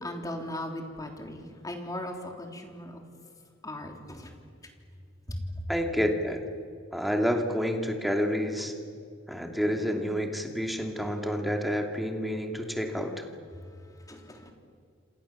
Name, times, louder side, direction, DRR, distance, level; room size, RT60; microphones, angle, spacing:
voice 1, 0.0-3.0 3.6-4.3 14.1-14.5, left 1 dB, 20° left, 3 dB, 3.4 m, -38 dB
voice 2, 5.7-6.4 6.9-8.7 9.3-13.2, equal, ahead, 3 dB, 2.6 m, -29 dB
28.0 x 27.5 x 7.3 m, 2.3 s
head